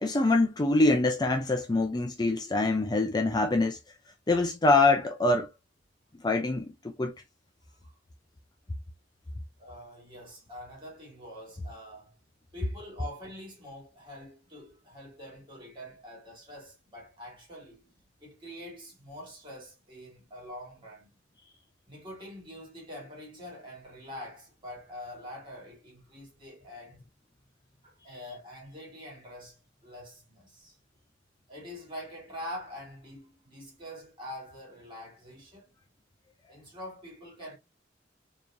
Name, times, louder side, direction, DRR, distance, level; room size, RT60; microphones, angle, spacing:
voice 1, 0.0-3.8 4.3-5.5 6.2-7.1, left 2 dB, 20° left, 0.5 m, -24 dB
voice 2, 9.6-12.1 12.5-17.9 18.2-21.1 21.9-27.1 27.8-30.8 31.5-35.7 36.5-37.6, left 1 dB, 25° right, 2.6 m, -45 dB
4.6 x 3.0 x 2.6 m
head